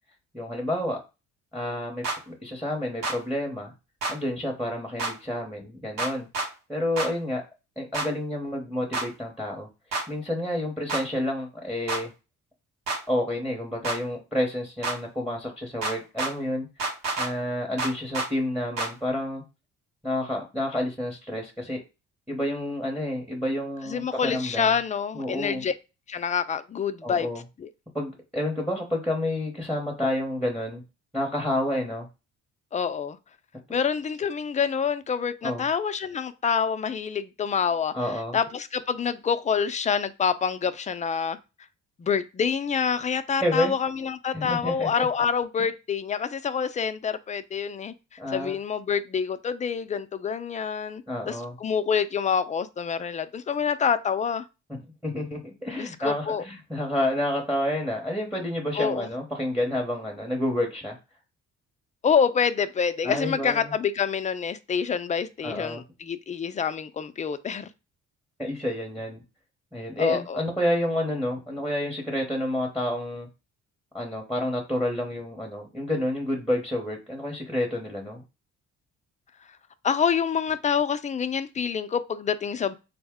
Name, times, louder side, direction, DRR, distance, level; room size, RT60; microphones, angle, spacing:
voice 1, 0.3-1.0 1.5-3.7 4.1-6.3 6.7-7.4 7.8-9.7 10.1-12.1 13.1-16.7 17.2-19.4 20.0-21.8 22.3-24.8 25.1-25.6 27.0-27.4 27.9-30.8 31.1-32.1 35.4-35.7 37.9-38.4 43.4-43.7 44.3-45.1 45.6-45.7 48.2-48.5 51.1-51.5 55.0-61.0 63.0-63.7 65.4-65.8 68.4-69.2 69.7-73.3 73.9-78.2, left 1 dB, 5° right, 0.8 m, -29 dB
sound 1, 2.0-2.2 3.0-3.2 4.0-4.1 5.0-5.1 6.0-6.5 7.0-7.1 7.9-8.1 8.9-9.1 9.9-10.0 10.9-11.0 11.9-12.0 12.9-13.0 13.8-14.0 14.8-15.0 15.8-16.3 16.8-17.3 17.8-18.3 18.8-18.9, right 3 dB, 85° right, 1.0 m, -28 dB
voice 2, 23.9-25.7 26.1-27.3 27.6-27.7 32.7-33.2 33.7-37.9 38.3-41.4 42.0-47.9 48.3-54.4 55.8-56.4 58.8-59.1 62.0-67.7 70.0-70.4 79.8-82.8, left 6 dB, 25° left, 0.3 m, -27 dB
4.1 x 2.1 x 3.5 m
cardioid pair, 90°, 30 cm